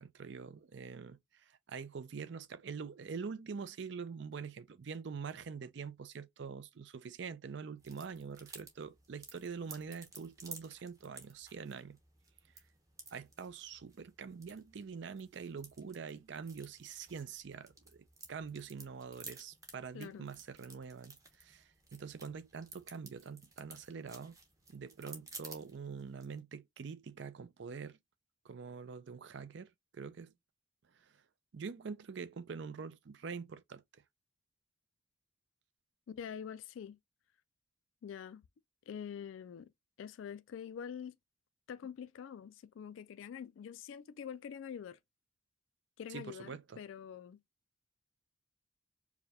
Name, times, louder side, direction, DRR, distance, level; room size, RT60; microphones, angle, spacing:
voice 1, 0.0-12.0 13.1-24.4 24.7-28.0 28.4-30.3 30.9-31.1 31.5-34.0 46.1-46.8, right 5 dB, 60° right, 0.4 m, -45 dB
sound 1, 7.8-26.4, right 3 dB, 15° right, 0.8 m, -55 dB
voice 2, 19.9-20.3 36.1-37.0 38.0-38.4 38.9-39.7 40.0-41.2 41.7-45.0 46.0-47.4, left 8 dB, 80° left, 0.3 m, -45 dB
4.8 x 2.2 x 2.8 m
head